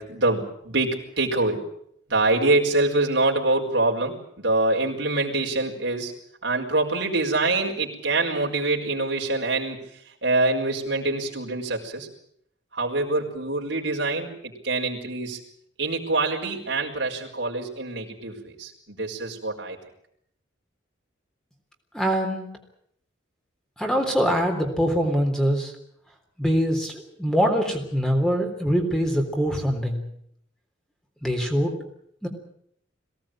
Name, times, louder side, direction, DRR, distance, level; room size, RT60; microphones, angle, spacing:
voice 1, 0.0-1.7 2.1-6.1 6.4-12.1 12.7-15.4 15.8-19.8, right 2 dB, 65° right, 0 dB, 4.8 m, -25 dB
voice 2, 21.9-22.5 23.8-25.7 26.4-30.0 31.2-31.7 32.2-32.3, equal, 5° left, 2 dB, 3.6 m, -23 dB
22.5 x 18.0 x 8.9 m, 0.70 s
head